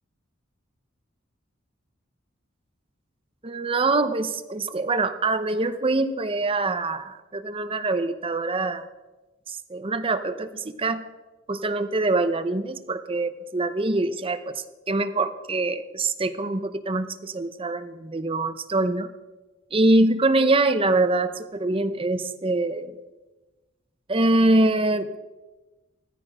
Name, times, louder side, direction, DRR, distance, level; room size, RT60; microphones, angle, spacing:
voice 1, 3.4-8.9 9.5-11.0 11.5-19.1 19.7-22.9 24.1-25.2, right 2 dB, 30° right, 10 dB, 0.7 m, -24 dB
17.0 x 14.0 x 5.0 m, 1.2 s
head